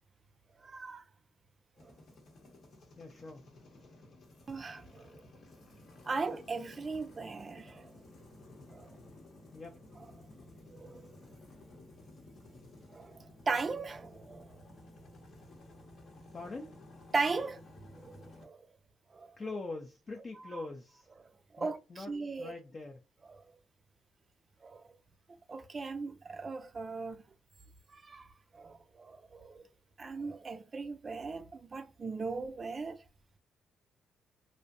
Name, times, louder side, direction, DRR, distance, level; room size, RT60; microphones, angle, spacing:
voice 1, 0.6-1.0 1.8-1.9 4.5-5.2 6.1-7.9 8.7-8.9 10.7-11.1 12.9-14.6 17.1-17.6 17.9-18.6 19.1-19.3 21.5-22.5 23.3-23.4 24.6-24.8 25.5-27.2 27.9-28.3 28.5-29.6 30.0-33.0, right 4 dB, 35° right, 0.3 m, -38 dB
sound 1, 1.8-18.5, left 1 dB, 55° left, 0.8 m, -55 dB
voice 2, 3.0-3.4 9.5-9.8 16.3-16.8 19.4-21.1 21.6-22.1 22.4-23.0, left 3 dB, 35° left, 0.4 m, -43 dB
2.5 x 2.0 x 2.5 m
cardioid pair, 90°, 0 cm